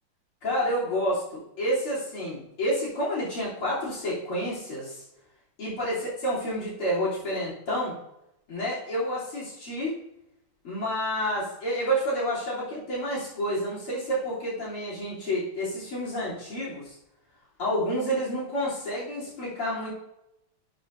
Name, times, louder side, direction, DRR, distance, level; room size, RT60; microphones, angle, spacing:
voice 1, 0.4-5.0 5.6-7.9 8.5-9.9 10.6-17.0 17.6-19.9, equal, 75° left, -7 dB, 4.3 m, -29 dB
13.0 x 6.7 x 2.7 m, 0.84 s
omnidirectional pair, 2.4 m